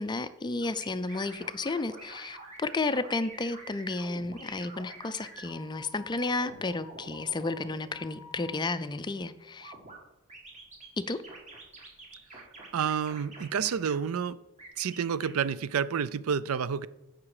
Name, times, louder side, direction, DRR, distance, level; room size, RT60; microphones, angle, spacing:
voice 1, 0.0-9.7 11.0-11.2, left 3 dB, 20° left, 12 dB, 0.4 m, -32 dB
sound 1, 0.6-8.5 9.6-10.0 10.3-14.0 14.6-15.3, right 1 dB, 30° right, 2.2 m, -47 dB
voice 2, 12.7-14.4 14.8-16.9, right 7 dB, 70° right, 17 dB, 0.4 m, -29 dB
15.5 x 6.0 x 4.9 m, 0.97 s
head